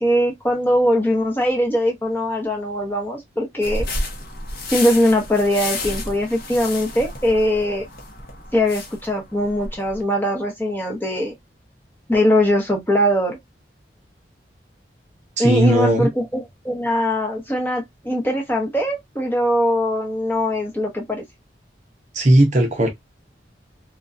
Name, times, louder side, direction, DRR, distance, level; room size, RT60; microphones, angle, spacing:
voice 1, 0.0-3.9 4.7-7.9 8.5-11.3 12.1-13.4 15.4-21.2, equal, 10° left, 0.8 m, -21 dB
sound 1, 3.6-10.0, left 2 dB, 55° left, 0.7 m, -31 dB
voice 2, 15.4-16.1 22.1-22.9, right 1 dB, 40° right, 0.6 m, -16 dB
2.6 x 2.2 x 2.3 m
head